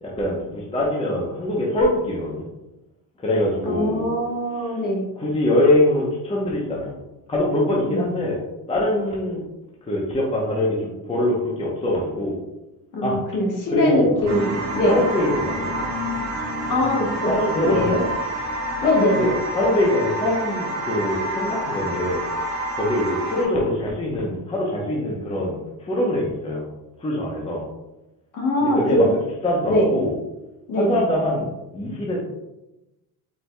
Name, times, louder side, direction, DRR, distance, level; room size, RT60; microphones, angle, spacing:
voice 1, 0.0-2.5 3.2-4.1 5.2-7.0 7.3-9.4 9.9-12.4 13.0-13.2 13.7-15.8 17.3-18.0 18.8-18.9 19.2-22.2 22.7-26.7 27.0-27.7 28.6-29.1 29.4-30.1 30.8-31.5 31.7-32.2, left 1 dB, 15° left, -3 dB, 0.8 m, -23 dB
voice 2, 3.6-5.1 7.9-8.2 12.9-15.0 16.7-18.0 18.8-19.4 28.3-29.0 29.7-29.9 30.7-30.9, left 1 dB, 50° left, -1 dB, 1.4 m, -22 dB
sound 1, 14.3-23.5, right 1 dB, 40° right, 1.3 m, -28 dB
4.5 x 4.5 x 2.3 m, 0.95 s
cardioid pair, 125°, 41 cm